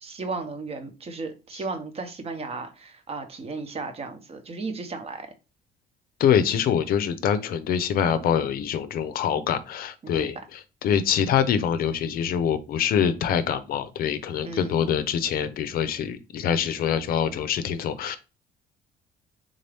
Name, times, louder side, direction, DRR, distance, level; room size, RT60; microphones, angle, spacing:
voice 1, 0.0-5.3 10.0-10.3 14.4-14.9, right 3 dB, 35° right, 0.9 m, -35 dB
voice 2, 6.2-18.2, left 8 dB, 60° left, 0.5 m, -25 dB
3.7 x 2.7 x 3.4 m
cardioid pair, 110°, 17 cm